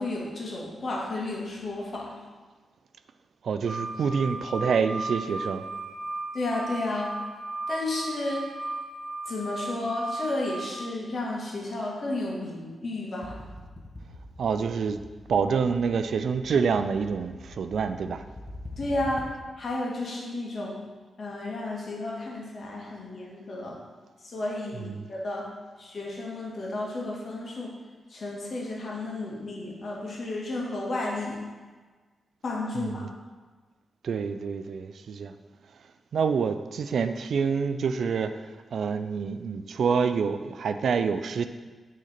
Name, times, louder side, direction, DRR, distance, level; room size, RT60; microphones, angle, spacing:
voice 1, 0.0-2.1 6.3-7.1 7.7-8.5 9.3-13.4 18.8-19.3 19.6-20.8 21.2-23.8 24.2-25.5 25.8-27.7 28.1-31.4 32.4-33.1, left 2 dB, 60° left, -2 dB, 1.8 m, -32 dB
voice 2, 3.4-5.7 14.4-15.0 15.3-18.2 25.0-25.1 32.8-33.1 34.0-35.3 36.1-38.4 38.7-41.5, right 6 dB, 70° right, 10 dB, 0.4 m, -27 dB
sound 1, 3.7-10.8, right 2 dB, 10° right, 0.7 m, -36 dB
sound 2, 13.2-19.6, left 1 dB, 35° left, 1.0 m, -44 dB
6.3 x 3.9 x 5.8 m, 1.4 s
supercardioid pair, 50°, 0 cm